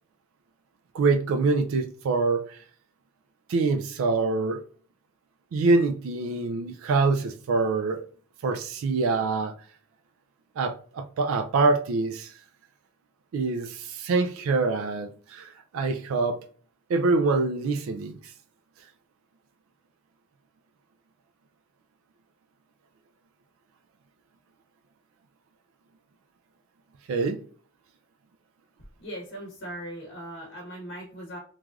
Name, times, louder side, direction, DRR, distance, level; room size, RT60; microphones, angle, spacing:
voice 1, 0.9-2.6 3.5-4.6 5.5-8.1 8.4-9.5 10.6-12.3 13.3-16.4 16.9-18.3 27.1-27.4, right 3 dB, 85° right, 0.3 m, -25 dB
voice 2, 29.0-31.4, right 1 dB, 55° left, 0.9 m, -39 dB
3.2 x 2.4 x 2.3 m
head